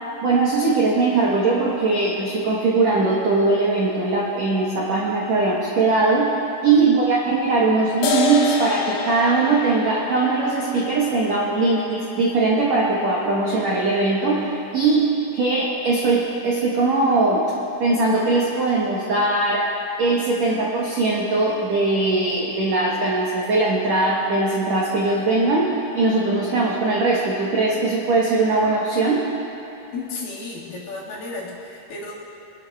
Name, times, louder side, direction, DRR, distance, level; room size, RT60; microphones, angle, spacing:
voice 1, 0.2-6.4 6.6-17.5 17.8-19.6 20.0-29.3, right 3 dB, 75° right, -5 dB, 1.5 m, -20 dB
voice 2, 6.8-7.2 29.9-32.1, left 3 dB, 60° left, -6 dB, 3.3 m, -33 dB
sound 1, 8.0-15.0, left 6 dB, 75° left, 3.0 m, -30 dB
23.0 x 12.5 x 2.3 m, 2.9 s
omnidirectional pair, 4.9 m